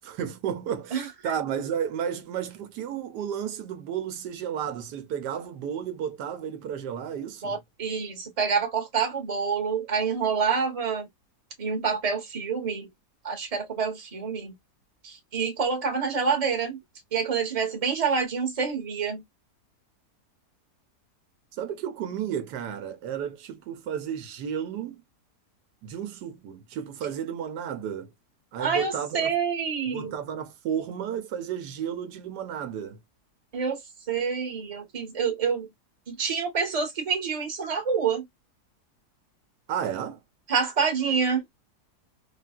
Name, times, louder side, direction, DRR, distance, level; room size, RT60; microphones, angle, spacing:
voice 1, 0.0-7.6 21.5-25.0 25.8-28.1 28.5-29.3 29.9-33.0 39.7-40.2, right 8 dB, 80° right, 1.2 m, -32 dB
voice 2, 0.9-1.3 7.4-11.1 11.6-12.9 13.2-14.5 15.0-16.8 17.1-19.2 28.6-30.2 33.5-33.8 34.1-35.7 36.1-38.2 40.5-41.4, right 6 dB, 25° right, 1.0 m, -27 dB
3.4 x 2.4 x 2.3 m
omnidirectional pair, 1.8 m